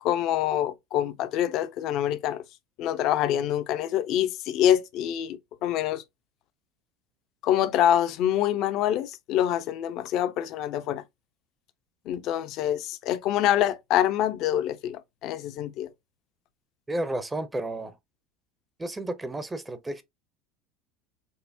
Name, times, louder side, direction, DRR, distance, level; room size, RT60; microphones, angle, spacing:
voice 1, 0.0-2.4 2.8-6.0 7.4-11.0 12.1-15.9, left 11 dB, 55° left, 0.5 m, -26 dB
voice 2, 16.9-18.0 18.8-20.0, right 1 dB, 15° right, 0.6 m, -32 dB
5.4 x 2.0 x 2.6 m
hypercardioid pair, 75°, 0 cm